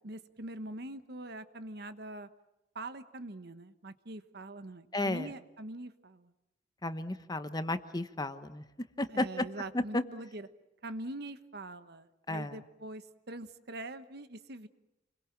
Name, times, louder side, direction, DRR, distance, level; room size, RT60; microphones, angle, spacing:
voice 1, 0.0-2.3 2.7-6.3 9.1-10.5 10.8-13.0 13.3-14.7, right 2 dB, 60° right, 11 dB, 1.2 m, -43 dB
voice 2, 4.9-5.3 6.8-8.6 9.0-9.5 9.7-10.0 12.3-12.6, left 1 dB, 20° left, 11 dB, 1.0 m, -33 dB
28.5 x 22.5 x 7.5 m, 0.92 s
head